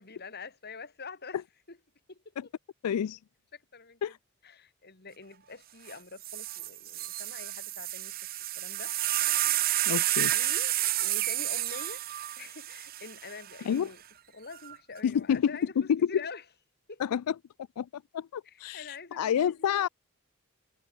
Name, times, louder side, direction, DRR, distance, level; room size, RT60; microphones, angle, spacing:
voice 1, 0.0-1.4 1.7-1.8 2.1-2.2 3.5-4.2 4.4-8.2 8.6-8.9 10.3-12.0 12.4-14.0 14.3-16.4 16.9-17.0 18.4-19.7, left 4 dB, 45° left, 2.8 m, -46 dB
voice 2, 2.8-3.2 4.0-4.2 9.9-10.3 13.7-13.9 15.0-16.1 17.0-17.3 17.8-19.9, left 8 dB, 85° left, 0.4 m, -29 dB
sound 1, 5.9-6.0 6.2-13.6 14.5-15.0, right 14 dB, 40° right, 0.6 m, -30 dB
head